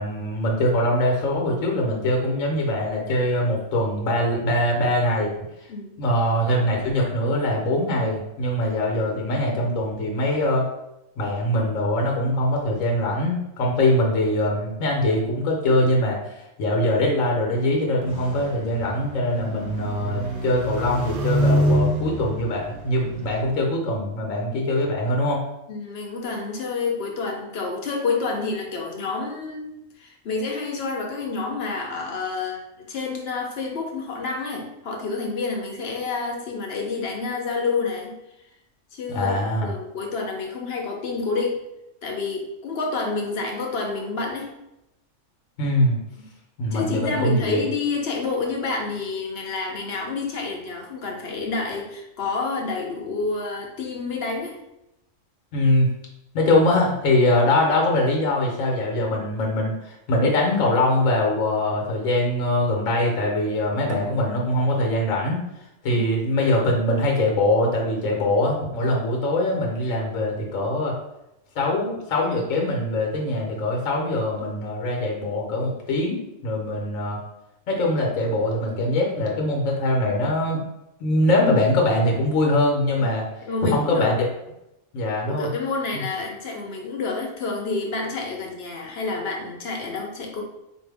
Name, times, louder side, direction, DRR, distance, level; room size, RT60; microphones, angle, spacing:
voice 1, 0.0-5.5 6.0-10.7 11.2-25.4 39.1-39.7 45.6-46.0 46.6-47.6 55.5-55.9 56.3-65.4 65.8-70.9 71.5-77.2 77.7-80.6 81.0-83.2 83.6-84.2 84.9-85.5 85.9-86.0, left 1 dB, 80° left, 0 dB, 1.3 m, -22 dB
sound 1, 18.0-23.5, equal, 65° right, 0.9 m, -26 dB
voice 2, 25.7-29.7 30.0-38.1 38.9-41.6 42.0-44.5 46.3-46.4 46.7-54.6 65.9-66.0 83.4-84.1 85.3-90.4, left 4 dB, 55° left, 1 dB, 1.0 m, -28 dB
sound 2, 63.9-67.1, right 3 dB, 85° right, 1.1 m, -41 dB
4.4 x 2.6 x 3.4 m, 0.87 s
omnidirectional pair, 1.3 m